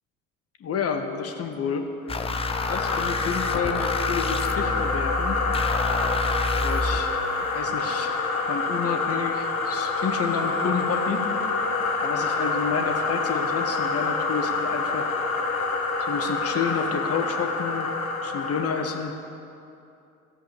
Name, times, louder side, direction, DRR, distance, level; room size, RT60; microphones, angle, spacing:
voice 1, 0.6-1.9 2.7-5.4 6.5-7.1 7.5-11.2 12.0-15.1 16.0-17.9 18.2-19.1, left 6 dB, 35° left, 5 dB, 1.5 m, -30 dB
sound 1, 2.1-19.1, left 4 dB, 80° left, 1.2 m, -27 dB
sound 2, 2.1-7.0, left 2 dB, 15° left, 0.7 m, -29 dB
15.0 x 7.9 x 8.1 m, 2.7 s
figure-of-eight pair, 65°, 41 cm